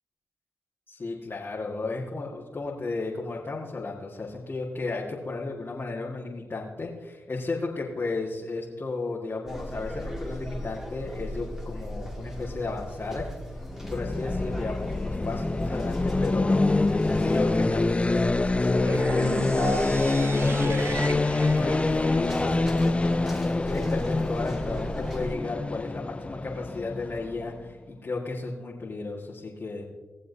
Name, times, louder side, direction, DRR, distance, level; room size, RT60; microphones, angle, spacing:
voice 1, 0.9-13.2 13.9-21.2 21.5-21.8 22.1-29.9, left 3 dB, 45° left, -5 dB, 2.0 m, -34 dB
sound 1, 9.5-25.4, equal, 5° right, 2.1 m, -36 dB
sound 2, 13.7-27.6, left 2 dB, 25° left, 0.4 m, -26 dB
sound 3, 18.8-22.8, right 3 dB, 55° right, 0.7 m, -35 dB
19.0 x 7.4 x 2.7 m, 1.3 s
supercardioid pair, 40°, 5 cm